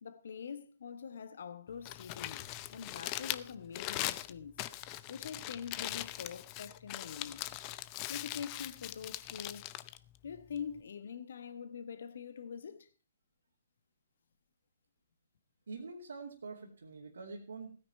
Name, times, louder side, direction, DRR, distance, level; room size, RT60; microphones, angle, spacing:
voice 1, 0.0-4.6 5.1-7.4 8.1-9.7 10.2-12.9, left 7 dB, 65° left, 1.3 m, -44 dB
Crumpling crinkling, 1.7-10.8, left 16 dB, 30° left, 0.7 m, -41 dB
voice 2, 15.7-17.8, right 4 dB, 75° right, 2.6 m, -45 dB
16.5 x 9.7 x 4.4 m
figure-of-eight pair, 130°, 0 cm